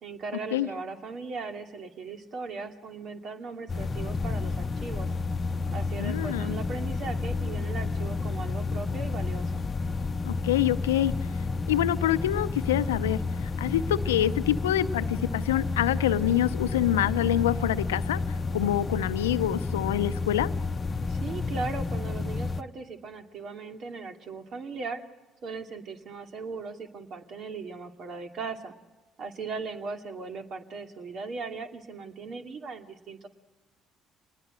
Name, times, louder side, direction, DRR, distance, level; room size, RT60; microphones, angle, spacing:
voice 1, 0.0-5.1 5.7-9.6 21.1-25.0 25.4-28.7 29.2-33.3, right 4 dB, 55° right, 5 dB, 2.5 m, -38 dB
sound 1, 3.7-22.6, left 4 dB, 35° left, 0.9 m, -31 dB
voice 2, 6.0-6.6 10.3-11.1 11.7-18.2 18.5-20.5, left 12 dB, 85° left, 13 dB, 0.7 m, -26 dB
26.5 x 20.5 x 7.7 m, 1.1 s
hypercardioid pair, 55°, 0 cm